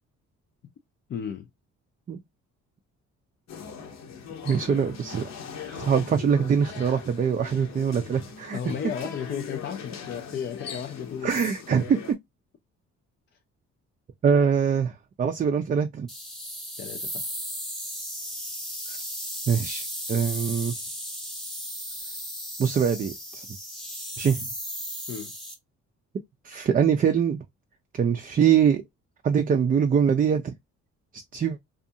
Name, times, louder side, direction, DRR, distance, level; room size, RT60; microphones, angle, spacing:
voice 1, 1.1-1.5 8.5-11.5 13.3-13.4 16.8-17.3 25.1-25.3, left 8 dB, 40° left, 0.4 m, -34 dB
sound 1, 3.5-12.1, left 6 dB, 60° left, 0.8 m, -40 dB
voice 2, 4.4-5.3 5.6-8.6 11.2-12.0 14.2-16.1 19.5-20.7 22.6-23.5 24.2-24.5 26.4-27.4 27.9-28.8 29.2-30.5 31.3-31.6, right 7 dB, 30° right, 0.3 m, -23 dB
sound 2, 16.1-25.6, equal, ahead, 0.8 m, -35 dB
2.6 x 2.4 x 2.6 m
cardioid pair, 90°, 30 cm